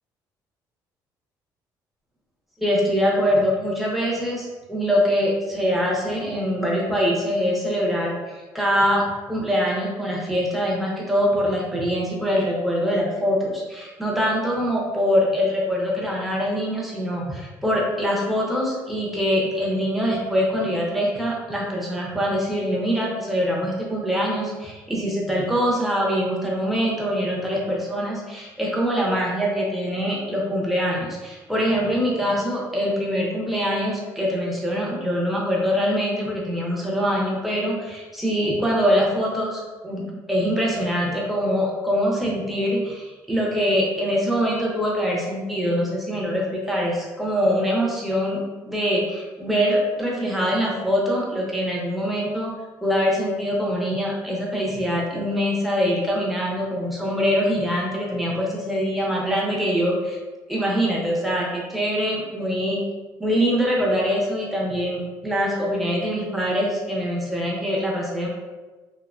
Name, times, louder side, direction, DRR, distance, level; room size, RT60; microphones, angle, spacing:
voice 1, 2.6-52.5 52.8-60.2 60.5-62.8 63.2-68.3, equal, ahead, -4 dB, 0.5 m, -23 dB
2.8 x 2.0 x 2.4 m, 1.3 s
cardioid pair, 130°, 8 cm